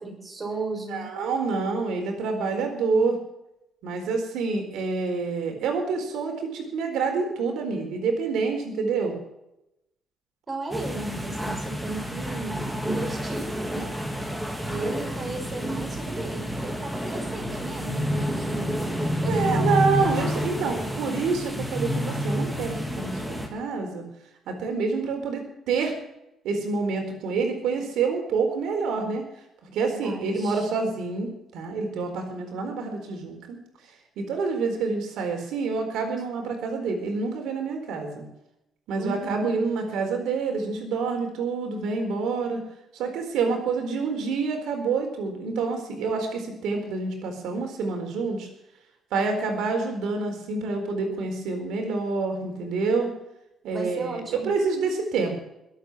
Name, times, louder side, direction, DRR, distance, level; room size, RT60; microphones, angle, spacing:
voice 1, 0.0-1.1 10.5-13.9 14.6-16.4 16.8-18.8 19.2-20.2 29.8-30.6 39.0-39.5 53.7-54.5, right 2 dB, 30° right, 1 dB, 6.7 m, -35 dB
voice 2, 0.9-3.2 3.8-9.1 19.3-24.0 24.5-26.0 26.4-29.3 29.7-33.6 34.2-38.2 38.9-42.6 42.9-48.5 49.1-53.1 53.6-55.4, right 4 dB, 85° right, 4 dB, 4.1 m, -27 dB
sound 1, 10.7-23.5, equal, 5° right, 3.2 m, -29 dB
21.5 x 8.4 x 6.3 m, 0.86 s
cardioid pair, 90°, 0 cm